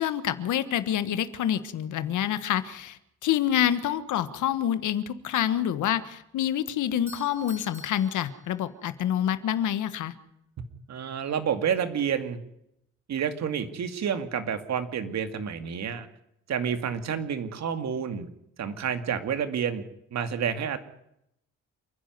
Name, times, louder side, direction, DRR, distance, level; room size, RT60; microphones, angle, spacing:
voice 1, 0.0-10.1, left 10 dB, 75° left, 13 dB, 1.5 m, -27 dB
Doorbell, 6.8-9.0, left 2 dB, 10° right, 5.1 m, -49 dB
voice 2, 10.9-12.4 13.1-16.1 16.5-18.3 18.6-19.8 20.1-20.8, right 7 dB, 60° right, 9 dB, 2.4 m, -29 dB
28.0 x 10.5 x 9.5 m, 0.79 s
cardioid pair, 90°, 30 cm